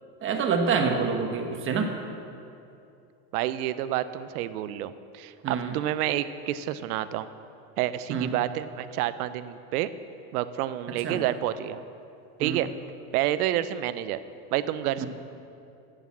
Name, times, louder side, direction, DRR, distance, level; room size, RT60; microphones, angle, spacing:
voice 1, 0.2-2.0 5.4-5.8 8.1-8.3 11.0-11.2 12.4-12.6 15.0-15.1, right 5 dB, 25° right, 4 dB, 1.1 m, -27 dB
voice 2, 3.3-7.3 7.8-9.9 10.3-11.8 12.4-12.7 13.1-14.2 14.5-15.1, right 13 dB, 75° right, 13 dB, 0.8 m, -29 dB
11.5 x 8.2 x 7.4 m, 2.6 s
supercardioid pair, 140°, 45 cm